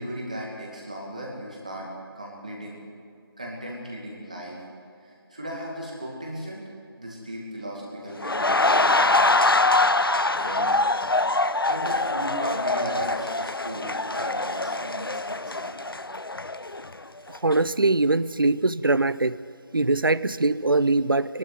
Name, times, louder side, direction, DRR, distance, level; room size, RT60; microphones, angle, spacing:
voice 1, 0.0-1.9 2.2-2.8 3.4-4.6 5.0-6.6 7.0-9.1 10.4-10.8 11.7-15.7, right 1 dB, 20° right, -3 dB, 2.4 m, -36 dB
sound 1, 8.2-17.0 17.3-17.6, left 2 dB, 65° left, 0.7 m, -24 dB
voice 2, 17.4-19.4 19.7-21.4, right 2 dB, 60° right, 17 dB, 0.6 m, -22 dB
22.5 x 12.0 x 9.5 m, 2.4 s
figure-of-eight pair, 180°, 13 cm